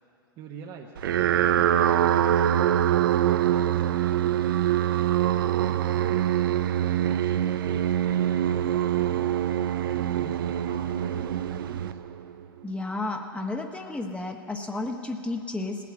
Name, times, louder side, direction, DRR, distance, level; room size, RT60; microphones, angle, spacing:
voice 1, 0.4-2.5 3.0-4.7 5.2-6.4 7.0-9.3 9.8-12.0, right 6 dB, 40° right, 2 dB, 1.1 m, -44 dB
sound 1, 1.0-12.4, right 11 dB, 70° right, 0.5 m, -24 dB
voice 2, 12.6-15.8, left 2 dB, 10° left, 3 dB, 1.1 m, -32 dB
18.5 x 8.6 x 8.5 m, 3.0 s
hypercardioid pair, 95°, 12 cm